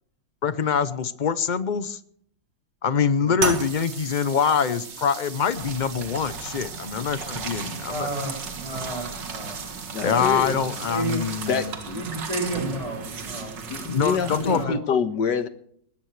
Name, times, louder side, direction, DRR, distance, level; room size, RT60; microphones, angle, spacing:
voice 1, 0.4-2.0 2.8-8.1 10.0-11.7 13.8-15.0, left 6 dB, 50° left, 13 dB, 0.5 m, -24 dB
sound 1, 3.4-12.0, right 5 dB, 40° right, 1.5 m, -36 dB
sound 2, 5.5-14.6, right 5 dB, 80° right, 2.4 m, -36 dB
voice 2, 7.6-10.1 10.5-11.2 11.9-13.9 14.4-14.8, right 2 dB, 20° right, 3 dB, 6.2 m, -33 dB
voice 3, 9.9-10.6 11.5-12.1 13.7-15.5, left 6 dB, 70° left, 9 dB, 2.0 m, -26 dB
21.0 x 18.0 x 3.3 m, 0.64 s
omnidirectional pair, 1.9 m